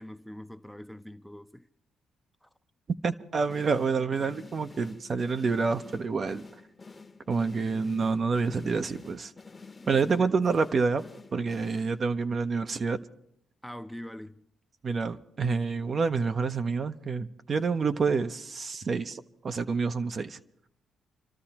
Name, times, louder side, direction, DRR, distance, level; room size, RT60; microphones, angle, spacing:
voice 1, 0.0-1.7 2.4-2.5 9.8-10.3 13.6-14.4 18.7-18.8, left 1 dB, ahead, 0.6 m, -43 dB
voice 2, 3.0-6.5 7.3-9.3 9.9-11.0 11.3-13.0 14.8-20.4, right 4 dB, 50° right, 0.7 m, -28 dB
sound 1, 3.5-12.3, left 4 dB, 30° left, 1.0 m, -49 dB
30.0 x 13.0 x 2.9 m
supercardioid pair, 65°, 0 cm